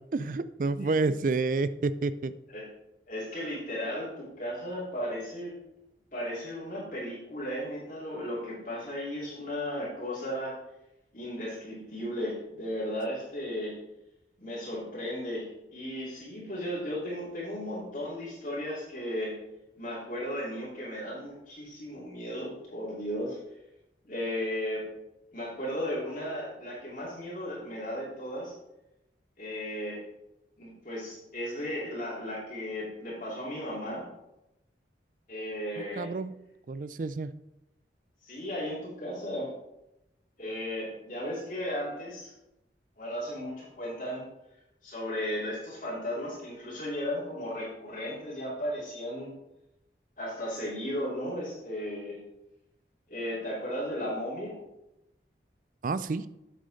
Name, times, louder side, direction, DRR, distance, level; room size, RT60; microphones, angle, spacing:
voice 1, 0.1-2.3 36.0-36.3 36.7-37.3 55.8-56.3, right 3 dB, 50° right, 15 dB, 0.4 m, -29 dB
voice 2, 3.1-5.5 6.1-10.6 11.1-13.8 14.4-19.3 19.8-23.4 24.0-24.8 25.3-28.5 29.4-30.0 30.6-34.0 35.3-36.1 38.2-39.5 40.4-42.3 43.0-44.2 44.8-49.3 50.2-52.2 53.1-54.6, equal, 50° left, -7 dB, 2.9 m, -35 dB
8.3 x 7.5 x 4.1 m, 0.89 s
head